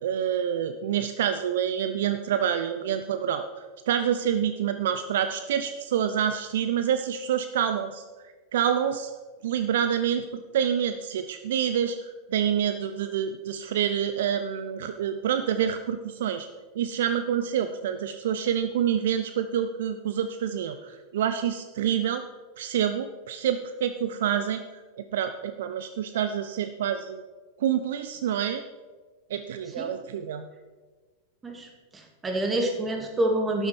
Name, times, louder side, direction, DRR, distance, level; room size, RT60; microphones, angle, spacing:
voice 1, 0.0-3.4 3.9-8.0 8.5-9.1 9.4-16.5 16.8-22.2 22.6-24.6 25.0-27.2 27.6-28.6 29.3-30.5, right 9 dB, 60° right, 9 dB, 0.5 m, -27 dB
voice 2, 31.4-33.7, right 1 dB, 15° right, 3 dB, 2.1 m, -27 dB
12.5 x 9.1 x 4.5 m, 1.3 s
figure-of-eight pair, 90°, 0 cm